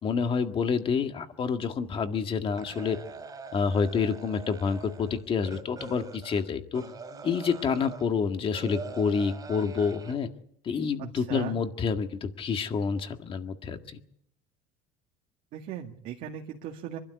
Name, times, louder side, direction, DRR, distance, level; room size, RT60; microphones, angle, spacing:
voice 1, 0.0-3.0 3.5-6.8 7.2-10.3 10.6-14.0, left 5 dB, 35° left, 7 dB, 1.8 m, -28 dB
sound 1, 2.6-8.1 8.5-10.1, right 4 dB, 25° right, 2.8 m, -43 dB
voice 2, 11.0-11.6 15.5-17.0, right 9 dB, 60° right, 1 dB, 2.1 m, -37 dB
25.0 x 12.0 x 9.6 m, 0.76 s
cardioid pair, 130°, 16 cm